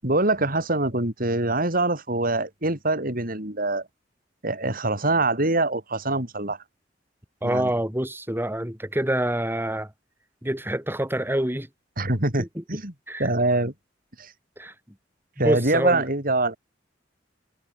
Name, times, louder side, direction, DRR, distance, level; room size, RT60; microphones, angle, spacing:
voice 1, 0.0-3.8 4.4-6.6 7.4-7.7 12.0-12.9 13.2-13.7 14.2-14.3 15.4-16.6, right 2 dB, 50° right, 6.6 m, -24 dB
voice 2, 7.4-9.9 10.4-11.7 12.4-12.6 13.1-13.3 14.6-14.7 15.4-16.0, right 1 dB, 10° right, 3.5 m, -26 dB
head